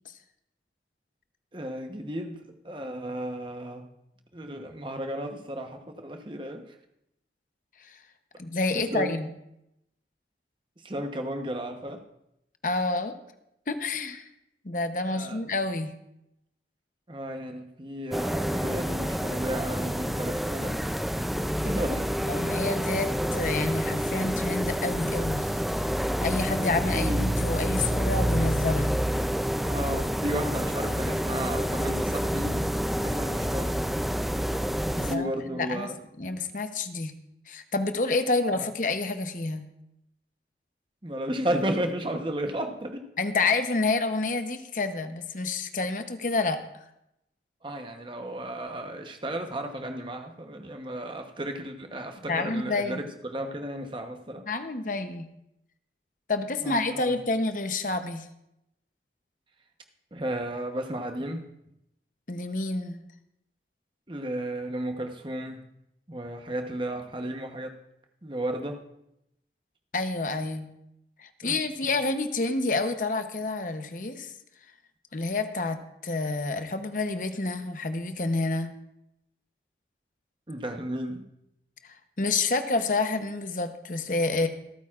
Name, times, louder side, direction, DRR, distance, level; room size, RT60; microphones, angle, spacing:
voice 1, 1.5-2.4 2.6-3.8 4.3-6.6 8.7-9.1 10.8-12.0 15.1-15.4 17.1-20.7 21.6-22.0 26.6-27.2 29.6-34.0 35.0-36.0 38.5-38.7 41.0-43.0 47.6-53.0 53.3-54.4 56.6-57.2 60.1-61.4 64.1-65.6 66.1-67.8 68.2-68.8 71.4-71.6 80.5-81.2, right 1 dB, 25° right, 5 dB, 0.9 m, -33 dB
voice 2, 8.4-9.3 12.6-13.1 13.7-14.3 14.6-15.9 22.2-25.5 26.2-29.0 35.0-35.9 36.2-37.1 37.5-39.7 43.2-46.6 52.3-53.1 54.5-55.3 56.3-58.3 62.3-63.0 69.9-70.7 71.2-74.3 75.1-75.8 76.0-78.7 81.8-84.5, left 3 dB, 45° left, 8 dB, 0.8 m, -28 dB
sound 1, 18.1-35.1, equal, ahead, 0.3 m, -28 dB
26.0 x 9.1 x 2.4 m, 0.83 s
head